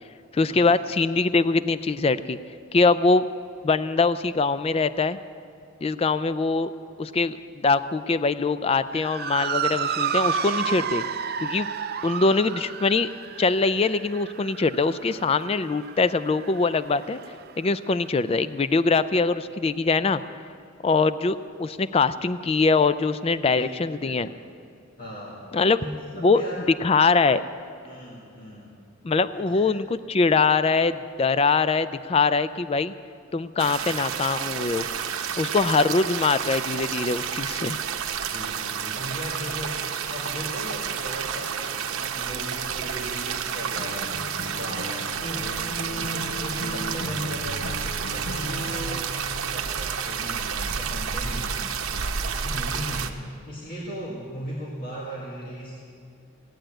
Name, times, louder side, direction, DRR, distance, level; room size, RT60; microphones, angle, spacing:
voice 1, 0.3-2.4 2.7-3.2 3.6-5.2 5.8-6.7 7.0-7.4 7.6-11.0 11.4-11.7 12.0-13.1 13.4-17.2 17.6-20.2 20.8-24.3 25.5-25.8 26.2-26.4 26.8-27.4 29.0-32.9 33.3-34.9 35.4-37.8, left 4 dB, 30° left, 14 dB, 0.3 m, -23 dB
Motor vehicle (road) / Siren, 8.9-17.5, right 7 dB, 45° right, 0.5 m, -31 dB
voice 2, 23.5-24.5 25.0-25.4 25.8-26.6 27.8-28.8 29.3-29.7 38.3-44.2 44.5-45.5 46.0-51.8 52.2-53.2 53.5-55.8, equal, 45° left, -5 dB, 2.0 m, -37 dB
sound 1, 33.6-53.1, right 7 dB, 85° right, 0.9 m, -30 dB
Acoustic guitar, 43.8-49.2, left 1 dB, 60° left, 1.0 m, -36 dB
17.0 x 9.0 x 8.8 m, 2.4 s
head